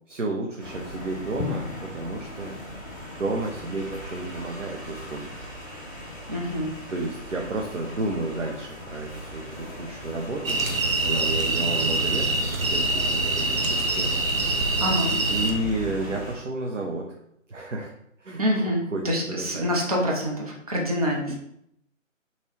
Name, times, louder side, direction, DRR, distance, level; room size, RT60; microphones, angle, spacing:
voice 1, 0.1-2.6 3.2-5.3 6.9-10.6 11.0-12.4 12.7-14.2 15.3-17.1 17.5-17.9 18.2-19.7 21.3-21.4, right 2 dB, 65° right, 0 dB, 0.8 m, -31 dB
sound 1, 0.6-16.3, equal, 15° left, 0.7 m, -39 dB
Drum, 1.4-3.4, left 6 dB, 80° left, 0.5 m, -37 dB
voice 2, 6.3-6.7 14.8-15.2 18.4-21.3, equal, 30° right, -2 dB, 0.7 m, -26 dB
sound 2, 10.4-15.5, right 2 dB, 90° right, 1.0 m, -24 dB
5.7 x 3.1 x 2.9 m, 0.74 s
figure-of-eight pair, 150°, 40 cm